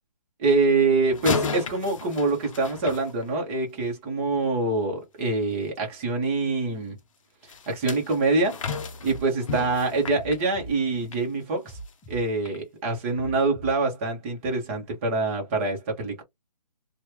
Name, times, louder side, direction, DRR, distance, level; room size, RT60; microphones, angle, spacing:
voice 1, 0.4-7.0 7.7-8.6 9.0-11.8 12.1-16.2, right 3 dB, 20° right, 1.1 m, -25 dB
sound 1, 1.1-3.7 7.5-11.3 11.7-11.9 12.5-12.6, left 4 dB, 50° left, 0.7 m, -34 dB
sound 2, 9.0-9.2 10.1-10.7 11.6-12.2 13.1-13.7, right 2 dB, ahead, 0.7 m, -40 dB
2.9 x 2.4 x 3.2 m
hypercardioid pair, 155°, 21 cm